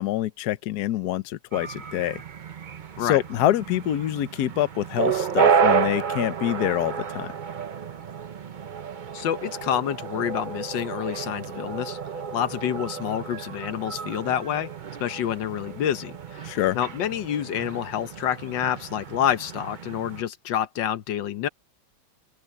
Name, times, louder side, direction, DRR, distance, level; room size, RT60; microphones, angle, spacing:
voice 1, 0.0-2.2 3.0-7.3 16.4-16.8, left 13 dB, 65° left, 1.2 m, -26 dB
sound 1, 1.5-20.2, right 6 dB, 55° right, 0.5 m, -30 dB
voice 2, 9.1-12.0 12.3-14.7 15.0-21.5, left 10 dB, 85° left, 1.6 m, -28 dB
open air
omnidirectional pair, 1.9 m